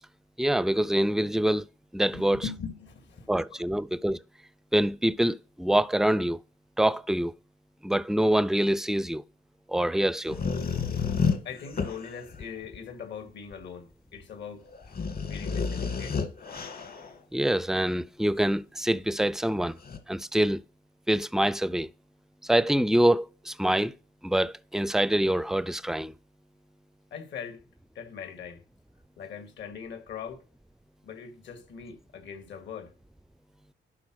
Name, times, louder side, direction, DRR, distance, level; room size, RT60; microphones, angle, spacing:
voice 1, 0.4-1.6 1.9-2.4 3.3-4.2 4.7-6.4 6.8-7.3 7.8-9.2 9.7-10.4 17.3-19.8 20.1-20.6 21.1-21.9 22.4-23.9 24.2-26.1, right 1 dB, ahead, 0.4 m, -25 dB
voice 2, 2.1-3.6 11.4-14.6 15.3-16.2 27.1-27.6 27.9-28.6 29.2-30.4 31.0-32.9, left 6 dB, 65° left, 2.4 m, -41 dB
sound 1, 10.3-12.8 13.5-13.6 14.2-14.3 14.6-17.2 19.8-20.0, left 5 dB, 50° left, 1.9 m, -31 dB
11.5 x 4.1 x 6.3 m
cardioid pair, 90°, 20 cm